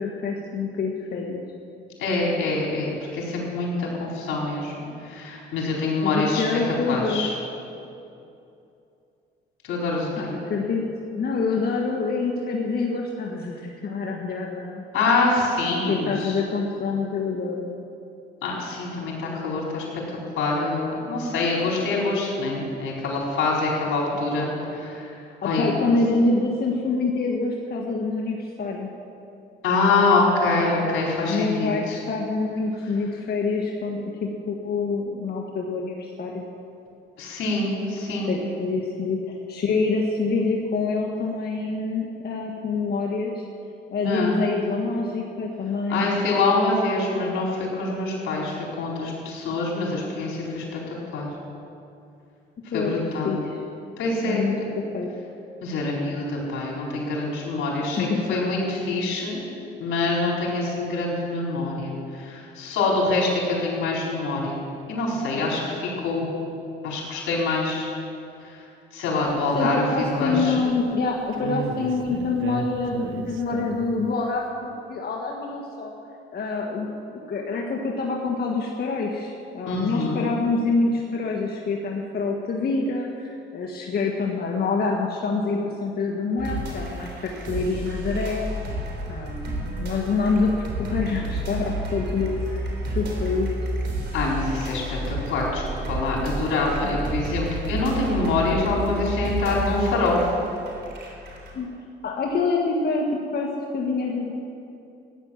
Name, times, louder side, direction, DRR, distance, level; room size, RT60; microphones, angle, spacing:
voice 1, 0.0-1.4 6.0-7.2 10.2-10.8 11.1-14.8 15.9-17.8 25.4-28.9 31.3-36.6 38.1-43.3 43.9-46.1 52.7-53.0 53.2-53.6 54.2-55.1 58.0-58.2 69.6-75.9 76.3-88.4 89.1-92.7 92.9-93.5 96.8-97.0 101.5-101.7 102.0-104.3, left 3 dB, 50° left, -1 dB, 1.7 m, -26 dB
voice 2, 2.0-6.4 6.9-7.3 9.6-10.3 14.9-16.4 18.4-25.2 25.4-25.7 29.6-32.0 37.2-38.3 44.0-44.4 45.9-51.3 52.7-53.3 54.0-54.6 55.6-59.4 59.8-64.6 64.9-66.3 66.8-67.9 68.4-68.6 68.9-69.8 70.2-70.6 79.7-80.2 94.1-100.2, left 3 dB, 85° left, -3 dB, 4.6 m, -25 dB
sound 1, 69.2-70.9 71.3-74.0, right 5 dB, 80° right, 1.1 m, -33 dB
sound 2, 86.4-101.5, right 1 dB, 60° right, 3.7 m, -31 dB
15.5 x 10.0 x 7.3 m, 2.6 s
cardioid pair, 90°, 20 cm